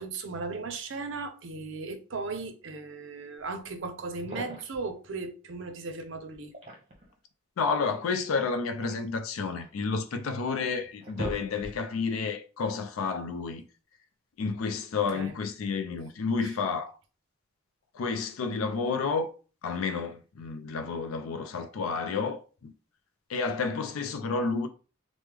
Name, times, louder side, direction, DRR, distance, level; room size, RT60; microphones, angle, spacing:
voice 1, 0.0-6.5 15.1-15.3 16.4-16.5, right 3 dB, 60° right, 0.5 m, -37 dB
sound 1, 4.1-4.9 6.3-7.1 8.4-9.8 10.4-10.5 10.8-12.0, equal, 30° right, 0.8 m, -41 dB
voice 2, 7.6-13.6 14.4-16.9 17.9-19.3 19.6-22.7 23.3-24.7, left 4 dB, 80° left, 0.4 m, -30 dB
3.3 x 2.0 x 3.3 m
head